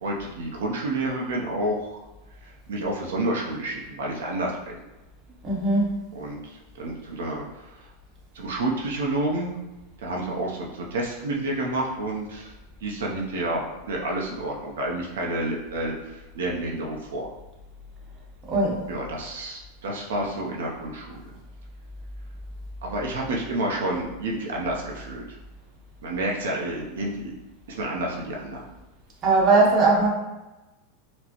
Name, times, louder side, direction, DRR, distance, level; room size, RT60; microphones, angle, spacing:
voice 1, 0.0-2.0 2.4-4.8 6.1-7.9 8.3-9.5 10.0-12.5 12.8-17.3 18.9-21.3 22.8-25.4 26.0-27.3 27.7-28.7, right 1 dB, 90° right, -2 dB, 0.6 m, -29 dB
voice 2, 5.4-5.9 18.5-18.8 29.2-30.1, right 3 dB, 30° right, -3 dB, 0.9 m, -19 dB
4.3 x 2.0 x 2.9 m, 1.0 s
supercardioid pair, 145°, 0 cm